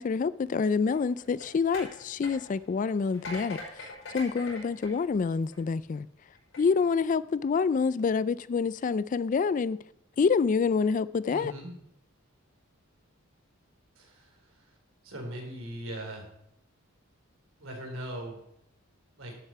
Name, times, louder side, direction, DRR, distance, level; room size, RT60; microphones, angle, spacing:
voice 1, 0.0-6.1 6.6-9.8 10.2-11.5, left 5 dB, 40° left, 0.3 m, -27 dB
sound 1, 0.9-5.8 6.3-6.6, left 2 dB, 60° left, 5.5 m, -43 dB
voice 2, 11.3-11.8 14.0-14.7 15.0-16.3 17.6-18.4 19.1-19.3, right 1 dB, 70° right, 4.0 m, -40 dB
11.5 x 8.1 x 5.5 m
head